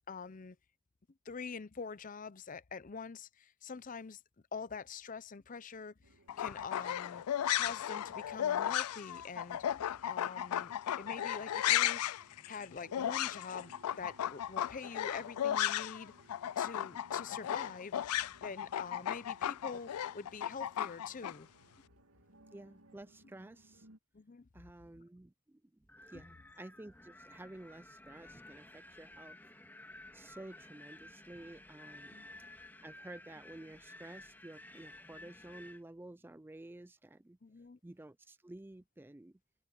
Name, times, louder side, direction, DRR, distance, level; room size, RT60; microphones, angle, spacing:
voice 1, 0.1-0.6 1.3-4.2 4.5-5.9 6.4-7.2 7.5-9.8 10.1-16.1 16.6-18.0 18.4-21.5 24.1-24.5 26.1-26.2 32.1-32.3 37.4-37.8, left 5 dB, 35° left, 0.6 m, -45 dB
sound 1, 6.0-24.0, right 2 dB, 85° right, 2.6 m, -64 dB
sound 2, 6.3-16.0 16.3-21.3, left 11 dB, 90° left, 0.4 m, -35 dB
voice 2, 22.5-23.9 24.5-25.6 26.1-29.4 30.1-32.2 32.8-37.4 37.8-39.4, right 1 dB, 10° right, 0.4 m, -52 dB
Wind, 25.9-35.8, left 1 dB, 10° left, 2.7 m, -54 dB
head